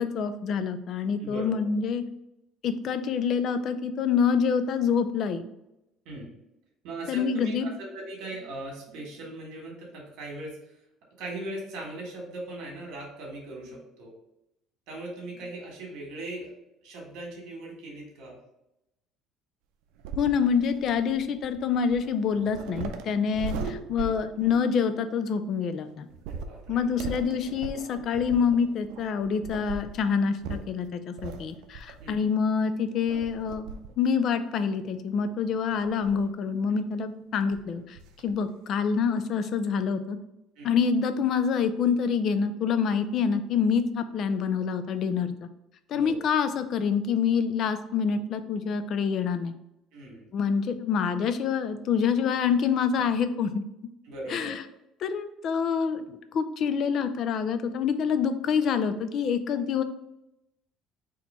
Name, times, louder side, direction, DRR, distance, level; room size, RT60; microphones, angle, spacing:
voice 1, 0.0-2.0 2.6-5.4 7.1-7.7 20.2-26.1 26.7-33.7 34.0-40.2 40.6-45.5 45.9-49.5 50.3-53.6 54.3-54.6 55.0-56.0 56.3-59.8, left 6 dB, 40° left, 10 dB, 0.4 m, -26 dB
voice 2, 1.2-1.5 6.1-6.3 6.8-10.8 11.2-14.1 14.9-16.5 16.8-18.4 24.0-24.1 26.3-27.1 32.0-32.2 40.6-40.7 45.9-46.2 49.9-50.3 54.1-54.6, right 2 dB, 65° right, -1 dB, 1.6 m, -39 dB
sound 1, 20.0-24.8 26.1-32.4 33.1-34.0 34.4-34.5 35.6-36.3 37.2-37.3 37.5-37.6 38.0-38.3, right 4 dB, 90° right, 0.5 m, -39 dB
4.2 x 2.9 x 4.3 m, 0.86 s
cardioid pair, 175°, 0 cm